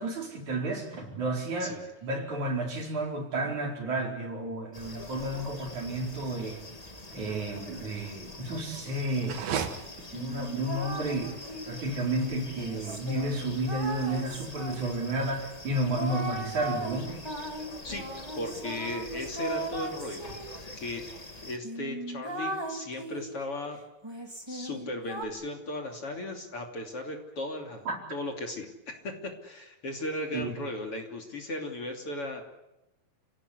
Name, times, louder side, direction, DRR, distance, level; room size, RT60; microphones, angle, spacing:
voice 1, 0.0-6.6 7.1-9.4 10.1-11.4 11.7-17.2 27.9-28.0 30.3-30.5, right 1 dB, 55° right, 1 dB, 5.8 m, -32 dB
voice 2, 1.6-1.9 17.8-18.1 18.4-21.1 21.4-23.8 24.5-29.1 29.4-32.4, left 1 dB, 40° left, 2 dB, 3.6 m, -36 dB
sound 1, 4.7-21.6, left 2 dB, 15° left, 1.4 m, -45 dB
sound 2, 9.2-15.3, right 7 dB, 80° right, 3.5 m, -40 dB
sound 3, 10.1-11.9 12.6-15.1 16.0-20.6 21.2-21.3 21.6-23.4 24.0-25.3, right 1 dB, 10° right, 2.2 m, -38 dB
29.5 x 17.5 x 9.8 m, 0.96 s
omnidirectional pair, 4.0 m